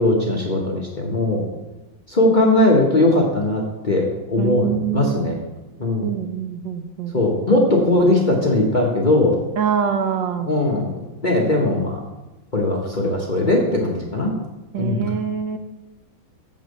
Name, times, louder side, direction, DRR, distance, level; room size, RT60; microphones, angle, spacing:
voice 1, 0.0-1.5 2.1-5.4 5.8-6.1 7.1-9.4 10.5-12.0 12.5-14.3 14.8-15.1, left 1 dB, 30° left, -2 dB, 1.0 m, -19 dB
voice 2, 4.4-5.3 6.0-7.1 9.6-10.5 14.7-15.6, right 8 dB, 75° right, 7 dB, 1.3 m, -24 dB
7.4 x 5.3 x 6.5 m, 1.0 s
omnidirectional pair, 2.2 m